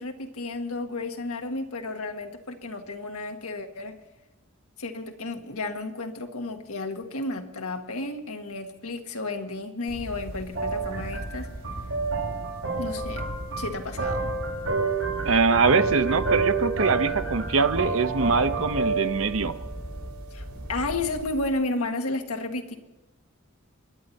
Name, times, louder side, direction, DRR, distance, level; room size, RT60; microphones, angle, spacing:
voice 1, 0.0-4.0 4.8-11.5 12.8-13.3 13.6-14.3 20.3-22.7, left 2 dB, 85° left, 4 dB, 1.7 m, -32 dB
sound 1, 9.9-21.5, right 3 dB, 85° right, 5.6 m, -29 dB
voice 2, 15.2-19.5, right 4 dB, 65° right, 10 dB, 0.9 m, -23 dB
26.5 x 11.0 x 4.2 m, 1.1 s
head